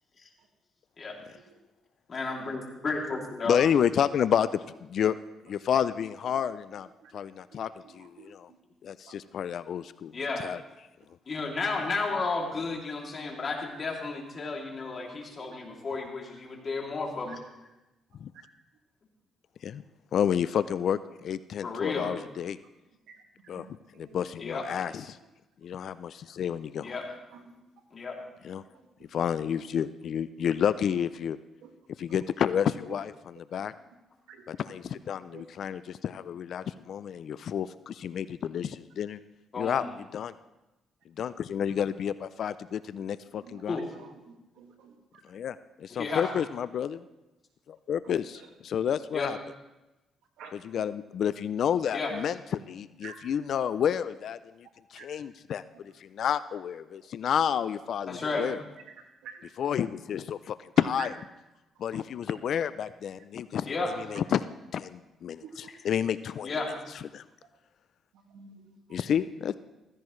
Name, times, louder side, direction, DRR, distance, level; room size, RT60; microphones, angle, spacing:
voice 1, 2.1-3.6 10.1-10.4 11.3-17.4 21.6-22.1 24.4-24.7 26.8-27.1 27.9-28.2 39.5-39.9 43.7-43.8 45.9-46.3 49.1-49.3 51.9-52.1 58.1-58.5 63.7-63.9 65.7-65.8 66.4-66.7, left 3 dB, 40° left, 0 dB, 2.8 m, -32 dB
voice 2, 3.4-5.2 5.4-6.9 7.1-8.5 8.8-10.6 18.2-18.3 19.6-19.8 20.1-22.6 23.5-23.7 24.0-25.2 25.6-27.0 28.4-28.6 29.1-31.4 32.0-33.7 34.5-39.2 39.6-39.8 40.1-40.3 41.2-43.8 45.3-47.0 47.7-49.4 50.5-55.6 56.0-58.6 59.6-61.2 61.8-66.5 66.9-67.2 68.9-69.5, left 8 dB, 65° left, 14 dB, 0.4 m, -30 dB
voice 3, 8.0-8.6 15.1-15.5 17.3-17.4 23.1-23.2 23.6-23.7 23.9-24.1 27.3-27.4 28.5-28.6 31.6-31.7 34.3-34.4 35.3-35.4 43.4-43.6 44.0-44.9 50.4-50.9 53.0-53.1 55.0-55.1 59.2-59.4 61.0-61.1 65.6-65.7 68.3-68.6 68.9-69.1, right 7 dB, 90° right, 3 dB, 1.8 m, -48 dB
15.5 x 15.0 x 3.2 m, 1.0 s
cardioid pair, 90°, 0 cm